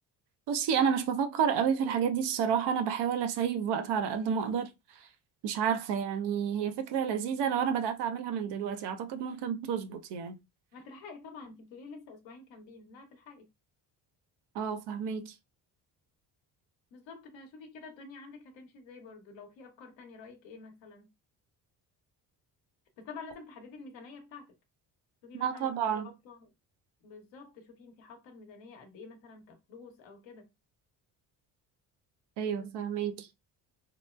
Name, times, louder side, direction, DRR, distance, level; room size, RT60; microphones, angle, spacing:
voice 1, 0.5-4.7 5.4-10.4 14.5-15.3 25.4-26.1 32.4-33.3, right 7 dB, 60° right, 0.7 m, -30 dB
voice 2, 10.7-13.5 16.9-21.1 23.0-24.5 25.2-26.5 27.0-30.5, left 4 dB, 70° left, 1.0 m, -49 dB
2.9 x 2.1 x 2.3 m
hypercardioid pair, 50°, 47 cm